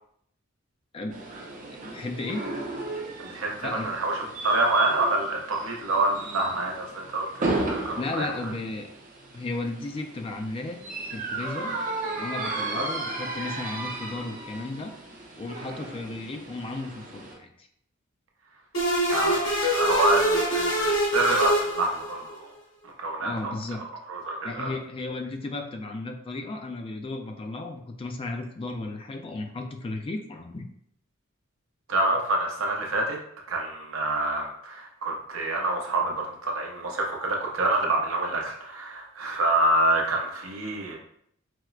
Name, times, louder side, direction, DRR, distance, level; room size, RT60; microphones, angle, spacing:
voice 1, 0.9-1.3 1.8-2.4 3.6-3.9 8.0-8.9 9.3-10.8 11.1-11.8 12.2-14.9 15.4-17.7 23.2-23.8 24.4-30.7, left 2 dB, 25° left, 4 dB, 0.3 m, -34 dB
sound 1, 1.1-17.3, right 2 dB, 40° right, 0.6 m, -35 dB
voice 2, 3.2-8.3 11.6-11.8 12.7-12.8 19.1-19.4 19.7-22.5 22.8-23.5 24.1-24.7 31.9-33.2 33.5-41.0, right 2 dB, 80° right, 0 dB, 0.7 m, -27 dB
sound 2, 18.7-22.3, right 1 dB, 90° left, 1.4 m, -24 dB
4.3 x 2.0 x 2.4 m, 0.70 s
head